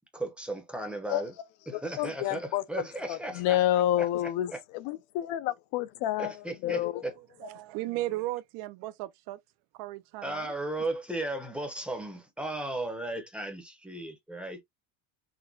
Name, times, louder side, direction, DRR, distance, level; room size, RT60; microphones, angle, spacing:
voice 1, 0.1-1.3 1.7-4.1 4.5-4.6 6.2-7.1 10.2-14.6, right 2 dB, ahead, 0.7 m, -36 dB
voice 2, 2.0-2.8 3.1-6.3 6.6-7.0, left 13 dB, 60° left, 0.8 m, -29 dB
voice 3, 7.4-9.4 9.8-10.5, right 17 dB, 50° right, 0.4 m, -35 dB
6.1 x 2.1 x 3.8 m
cardioid pair, 180°, 50 cm